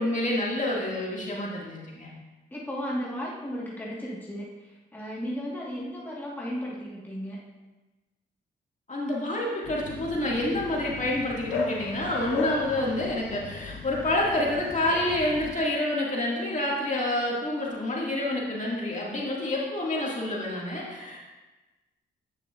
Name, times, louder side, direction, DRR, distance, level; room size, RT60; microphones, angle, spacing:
voice 1, 0.0-2.1 8.9-21.2, left 1 dB, 40° left, -4 dB, 2.1 m, -28 dB
voice 2, 2.5-7.4, equal, 10° left, -5 dB, 1.6 m, -35 dB
Bark, 9.6-15.5, left 3 dB, 85° left, 0.9 m, -36 dB
8.5 x 6.7 x 2.5 m, 1.2 s
supercardioid pair, 50°, 20 cm